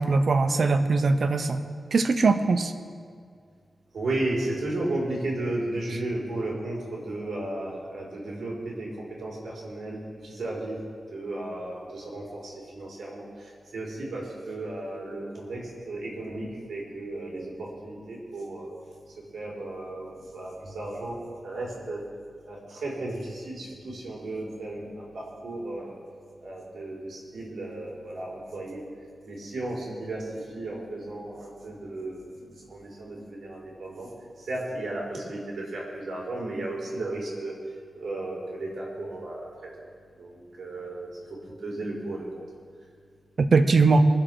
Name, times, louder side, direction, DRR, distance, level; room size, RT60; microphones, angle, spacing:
voice 1, 0.0-1.6 1.9-2.7 43.4-44.0, right 3 dB, 55° right, 8 dB, 0.9 m, -21 dB
voice 2, 3.9-10.8 11.1-18.7 19.1-22.0 22.5-26.0 26.4-28.8 29.2-34.1 34.4-37.5 37.9-39.5 40.2-41.1 41.6-42.3, right 2 dB, 75° right, -3 dB, 4.5 m, -34 dB
22.5 x 7.9 x 6.2 m, 2.1 s
wide cardioid pair, 145°, 0 cm